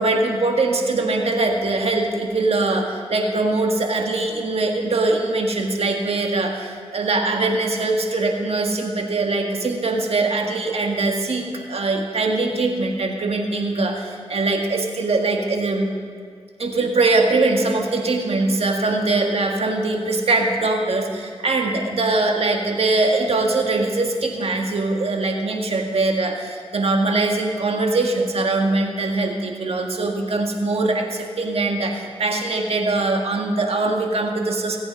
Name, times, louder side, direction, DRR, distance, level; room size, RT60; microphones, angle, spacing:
voice 1, 0.0-15.9 16.6-34.8, right 2 dB, 65° right, 2 dB, 1.8 m, -22 dB
19.5 x 8.6 x 5.3 m, 2.1 s
cardioid pair, 40°, 11 cm